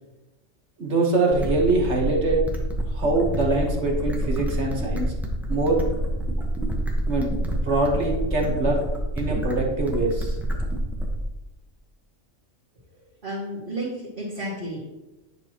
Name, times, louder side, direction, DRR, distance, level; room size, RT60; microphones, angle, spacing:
voice 1, 0.8-2.4 2.9-5.1 5.5-5.8 7.1-8.8 9.2-10.4, right 2 dB, 55° right, 0 dB, 1.6 m, -23 dB
sound 1, 1.3-11.3, right 1 dB, ahead, 1.0 m, -27 dB
voice 2, 13.2-14.9, right 1 dB, 40° right, -9 dB, 2.2 m, -32 dB
10.0 x 6.7 x 3.0 m, 1.1 s
omnidirectional pair, 1.4 m